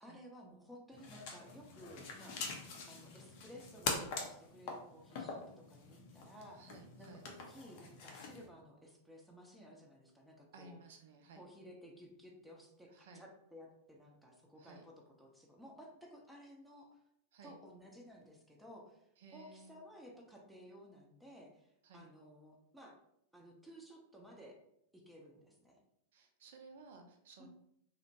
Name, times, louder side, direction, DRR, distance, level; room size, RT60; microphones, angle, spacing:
voice 1, 0.0-2.4 2.9-6.7 7.0-10.8 11.4-16.9 17.4-19.0 19.3-22.9 23.3-24.6 24.9-25.8 27.4-27.5, equal, 5° right, -1 dB, 0.5 m, -56 dB
sound 1, 0.9-8.5, left 4 dB, 50° left, 0.5 m, -44 dB
voice 2, 6.5-7.3 10.5-11.5 12.9-13.2 14.6-14.8 17.3-17.5 19.2-19.7 21.8-22.1 26.1-27.5, right 3 dB, 55° right, 5 dB, 0.4 m, -57 dB
2.8 x 2.1 x 2.7 m, 0.74 s
figure-of-eight pair, 90°, 0 cm